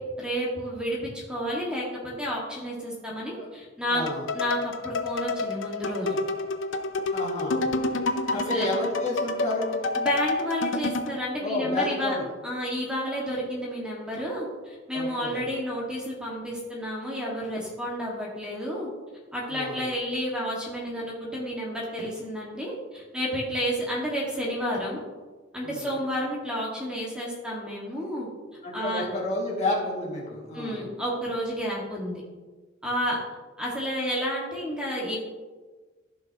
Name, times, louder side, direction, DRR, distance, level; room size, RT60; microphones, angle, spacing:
voice 1, 0.2-4.0 4.3-6.2 8.5-8.7 10.0-12.2 12.4-18.9 19.3-25.0 25.5-28.3 28.7-29.1 30.5-32.2 32.8-33.2 33.6-35.2, equal, 5° right, -5 dB, 1.9 m, -31 dB
voice 2, 3.9-4.3 7.1-7.6 8.1-9.8 11.4-12.3 14.9-15.4 19.5-19.8 25.6-25.9 28.6-30.8, left 2 dB, 35° left, -4 dB, 2.3 m, -30 dB
sound 1, 4.1-11.2, left 2 dB, 85° left, 0.7 m, -29 dB
14.5 x 5.9 x 3.0 m, 1.3 s
head